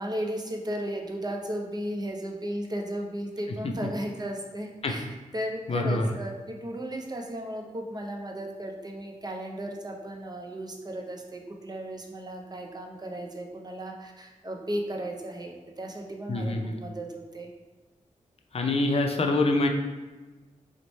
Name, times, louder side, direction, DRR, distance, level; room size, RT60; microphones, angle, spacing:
voice 1, 0.0-5.1 5.3-17.5, right 1 dB, 30° right, 1 dB, 0.6 m, -35 dB
voice 2, 5.7-6.1 16.3-16.8 18.5-19.7, left 2 dB, 45° left, 3 dB, 0.5 m, -25 dB
3.0 x 2.1 x 4.0 m, 1.2 s
cardioid pair, 50°, 14 cm